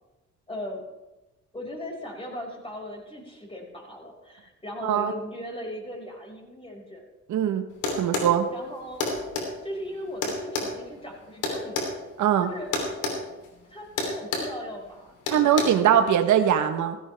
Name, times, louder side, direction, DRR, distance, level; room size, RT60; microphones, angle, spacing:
voice 1, 0.5-0.8 1.5-7.0 8.5-9.0 9.6-11.9 12.4-12.7 13.7-15.1 15.5-16.2, left 1 dB, 20° left, -1 dB, 5.3 m, -38 dB
voice 2, 4.8-5.1 7.3-7.6 8.0-8.5 12.2-12.5 15.3-17.0, right 9 dB, 75° right, 8 dB, 1.1 m, -21 dB
sound 1, 7.8-8.3 9.0-9.5 10.2-11.9 12.7-13.2 13.4-13.6 14.0-14.5 15.3-15.6, left 3 dB, 85° left, 3.2 m, -28 dB
16.5 x 15.0 x 3.4 m, 1.1 s
cardioid pair, 90°, 30 cm